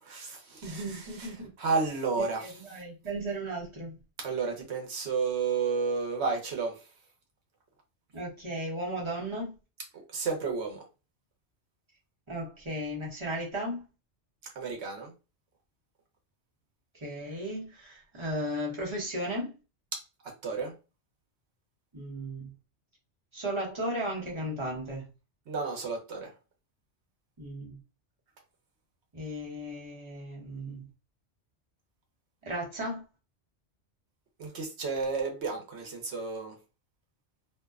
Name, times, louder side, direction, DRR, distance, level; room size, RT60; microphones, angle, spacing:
voice 1, 0.0-2.6 4.2-6.8 9.9-10.8 14.6-15.1 19.9-20.0 20.4-20.7 25.5-26.3 34.4-36.5, right 4 dB, 70° right, 1.0 m, -32 dB
voice 2, 0.6-1.5 2.2-4.0 8.1-9.5 12.3-13.8 16.9-19.5 21.9-22.5 23.3-25.1 27.4-27.8 29.1-30.9 32.4-33.0, right 1 dB, 30° right, 0.9 m, -35 dB
2.6 x 2.1 x 2.3 m
omnidirectional pair, 1.2 m